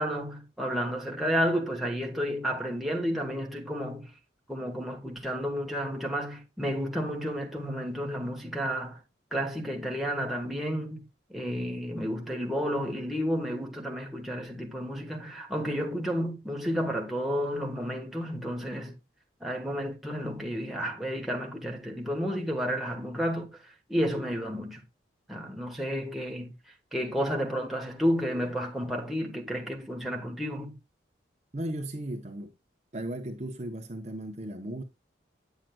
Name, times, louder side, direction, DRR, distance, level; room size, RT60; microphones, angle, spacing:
voice 1, 0.0-4.1 4.5-9.0 9.3-11.0 11.3-19.0 19.4-24.8 25.3-30.7, equal, ahead, 1.4 m, -31 dB
voice 2, 31.5-32.5 32.9-34.8, right 1 dB, 35° right, 0.8 m, -36 dB
9.1 x 7.5 x 2.3 m
head